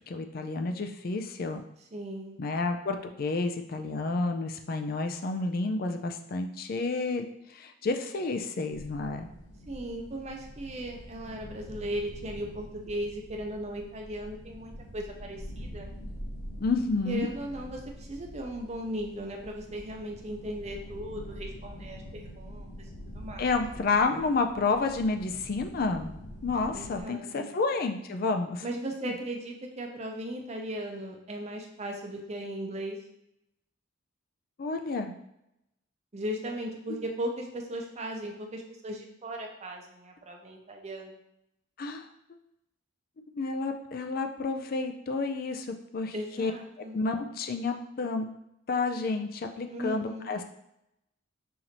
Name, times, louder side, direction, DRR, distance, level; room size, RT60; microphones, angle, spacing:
voice 1, 0.1-1.6 2.4-9.3 16.6-17.3 23.4-26.1 26.4-28.6 34.6-35.1 41.8-42.1 43.3-46.5 46.9-48.3 48.7-50.4, left 3 dB, 45° left, 6 dB, 0.4 m, -30 dB
voice 2, 1.9-2.4 9.7-15.9 17.1-23.6 26.7-27.5 28.6-33.0 36.1-41.2 46.1-47.0 49.7-50.3, right 1 dB, 30° right, 2 dB, 0.6 m, -37 dB
sound 1, 8.7-27.0, equal, 85° left, 0.9 m, -45 dB
5.7 x 2.6 x 2.9 m, 0.82 s
head